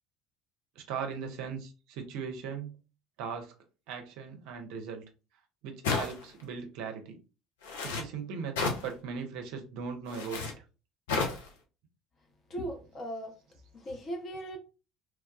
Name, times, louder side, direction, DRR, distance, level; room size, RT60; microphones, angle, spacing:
voice 1, 0.8-2.8 3.2-3.5 3.9-5.0 5.6-7.2 7.8-10.6, right 6 dB, 60° right, 0.5 m, -39 dB
sound 1, 5.8-6.4 7.6-8.0 8.6-8.9 10.1-10.5 11.1-11.5, left 4 dB, 70° left, 0.6 m, -31 dB
voice 2, 12.5-13.4 13.7-14.6, equal, 35° left, 0.8 m, -38 dB
3.1 x 2.2 x 2.3 m
figure-of-eight pair, 60°, 0 cm